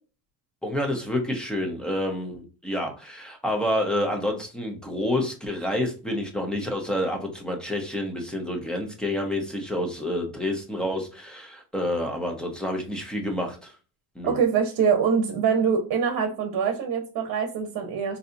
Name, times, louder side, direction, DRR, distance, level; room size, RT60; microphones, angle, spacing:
voice 1, 0.6-13.7 14.2-14.4, left 1 dB, ahead, 2 dB, 0.8 m, -28 dB
voice 2, 14.2-18.2, right 6 dB, 50° right, 3 dB, 1.0 m, -24 dB
3.9 x 2.8 x 2.5 m, 0.35 s
cardioid pair, 125°, 46 cm